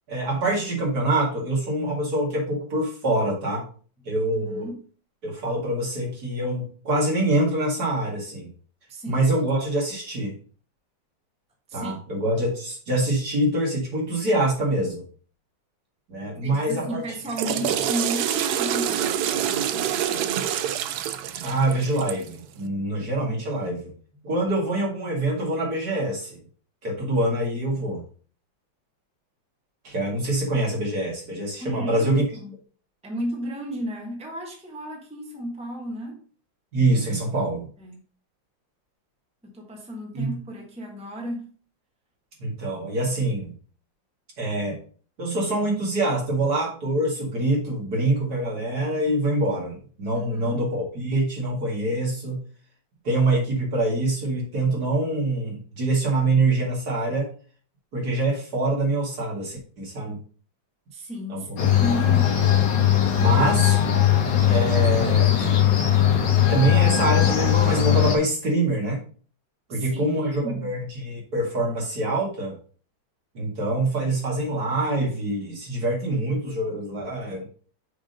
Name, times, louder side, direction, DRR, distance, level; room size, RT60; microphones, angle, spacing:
voice 1, 0.1-3.6 4.0-4.7 5.2-8.5 9.1-10.3 11.7-15.0 16.1-17.0 21.4-23.9 24.2-26.4 26.8-28.0 29.8-32.2 36.7-37.7 40.1-40.4 42.4-43.5 44.4-44.8 45.2-52.4 53.0-57.3 57.9-60.2 61.3-61.6 61.9-62.0 63.2-63.8 64.4-65.3 66.5-69.0 69.7-72.6 73.3-77.5, right 2 dB, 55° right, -2 dB, 2.7 m, -25 dB
voice 2, 4.4-4.8 8.9-9.3 11.7-11.9 16.4-20.8 31.6-32.1 32.4-32.5 33.0-36.2 37.8-38.0 39.5-41.5 50.1-50.6 60.9-62.4 69.7-70.7, right 1 dB, 5° right, -1 dB, 1.3 m, -34 dB
Water / Toilet flush, 17.1-22.3, right 10 dB, 75° right, 1.0 m, -26 dB
sound 1, 61.6-68.2, left 10 dB, 70° left, 1.9 m, -19 dB
6.2 x 3.7 x 5.3 m, 0.42 s
omnidirectional pair, 2.0 m